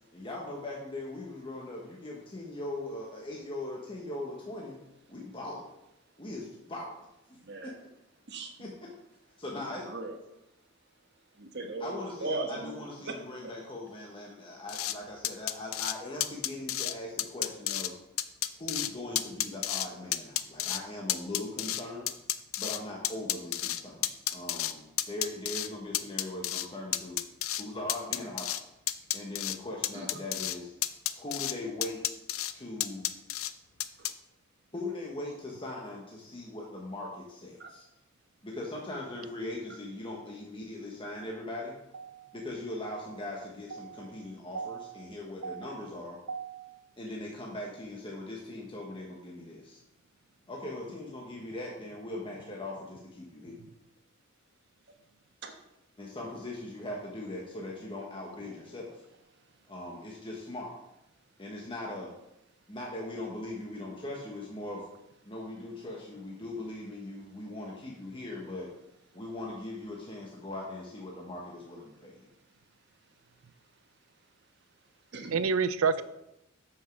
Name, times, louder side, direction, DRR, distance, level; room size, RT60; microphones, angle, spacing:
voice 1, 0.1-4.8 5.1-5.6 6.2-6.9 7.6-7.7 8.6-8.9 9.4-9.9 11.8-18.0 18.6-22.1 22.6-27.2 27.6-28.5 29.1-30.7 31.2-32.0 32.5-33.1 34.7-37.9 38.4-41.8 42.3-46.2 47.0-49.8 50.5-53.6 56.0-59.0 59.7-60.7 61.4-62.1 62.7-64.9 65.2-68.7 69.1-72.2, left 2 dB, 25° left, -2 dB, 1.1 m, -40 dB
voice 2, 7.3-7.7 8.3-8.7 9.8-10.2 11.4-13.1 29.9-30.2 34.0-34.1 37.6-37.7 55.4-55.5 75.1-75.4, right 2 dB, 55° right, 4 dB, 1.3 m, -38 dB
sound 1, 14.7-14.9 15.2-15.9 16.2-16.9 17.2-17.9 18.2-18.9 19.2-19.9 20.1-20.8 21.1-22.8 23.0-24.7 25.0-25.7 25.9-26.7 26.9-27.6 27.9-28.6 28.9-29.6 29.8-30.6 30.8-31.5 31.8-32.5 32.8-33.5 33.8-34.1, left 13 dB, 75° left, 0.5 m, -31 dB
voice 3, 43.7-44.1 44.5-44.9 45.4-45.7 46.3-46.8 75.3-76.0, right 5 dB, 80° right, 14 dB, 0.5 m, -31 dB
7.3 x 6.4 x 5.9 m, 0.87 s
head